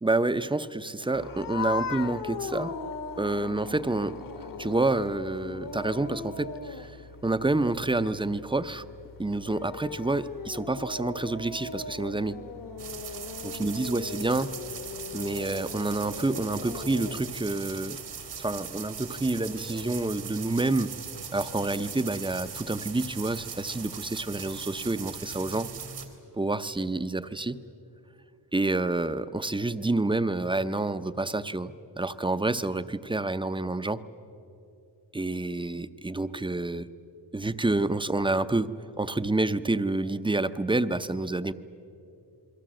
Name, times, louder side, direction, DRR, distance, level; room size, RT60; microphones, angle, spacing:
voice 1, 0.0-2.8 3.2-4.2 4.6-7.0 7.2-8.8 9.2-12.4 13.4-14.5 15.1-18.0 18.4-20.9 21.3-25.7 26.3-27.6 28.5-34.0 35.1-36.9 37.3-41.5, right 2 dB, 10° right, 12 dB, 0.6 m, -28 dB
sound 1, 1.1-17.3, left 5 dB, 50° left, 1.3 m, -39 dB
sound 2, 12.8-26.0, right 7 dB, 85° right, 3.0 m, -40 dB
28.5 x 23.0 x 7.7 m, 2.8 s
wide cardioid pair, 140°, 42 cm